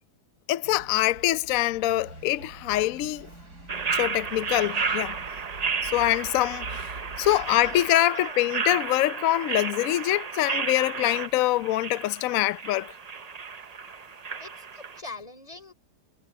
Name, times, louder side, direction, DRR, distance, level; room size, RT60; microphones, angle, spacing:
voice 1, 0.5-3.3 3.9-5.2 5.8-12.9, left 15 dB, 70° left, 0.9 m, -24 dB
sound 1, 0.6-7.9, right 2 dB, 80° right, 6.5 m, -45 dB
sound 2, 3.7-15.0, right 5 dB, 45° right, 0.5 m, -33 dB
voice 2, 7.3-7.8 8.1-8.5 14.4-15.7, left 3 dB, 20° left, 3.5 m, -43 dB
omnidirectional pair, 1.7 m